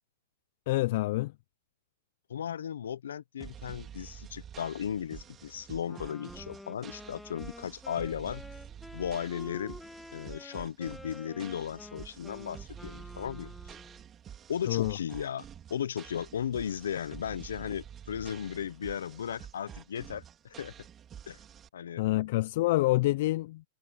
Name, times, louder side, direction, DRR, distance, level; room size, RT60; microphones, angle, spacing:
voice 1, 0.7-1.3 14.7-15.0 22.0-23.6, left 18 dB, 55° left, 0.5 m, -27 dB
voice 2, 2.3-8.4 8.9-9.8 10.1-13.7 14.5-20.7 21.3-21.4 21.7-22.0, left 8 dB, 85° left, 0.9 m, -36 dB
sound 1, 3.4-21.7, right 9 dB, 25° right, 4.3 m, -49 dB
Wind instrument woodwind instrument, 5.8-14.1, left 2 dB, 5° left, 1.6 m, -49 dB
hypercardioid pair, 135°, 0 cm